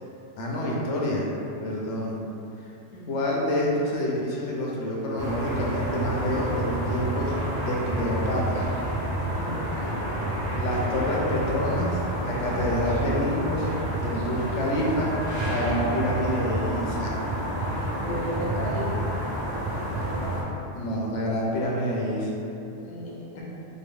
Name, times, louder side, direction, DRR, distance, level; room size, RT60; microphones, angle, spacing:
voice 1, 0.4-1.3 1.6-2.2 3.1-7.3 7.6-8.6 10.6-15.1 15.5-17.2 20.7-22.3, equal, 85° left, -3 dB, 0.9 m, -27 dB
voice 2, 2.9-3.2 9.3-10.1 18.0-18.9 22.8-23.2, equal, 40° left, -6 dB, 0.8 m, -34 dB
sound 1, 5.2-20.4, right 1 dB, 35° right, 0.4 m, -29 dB
3.7 x 2.1 x 3.6 m, 2.8 s
omnidirectional pair, 1.2 m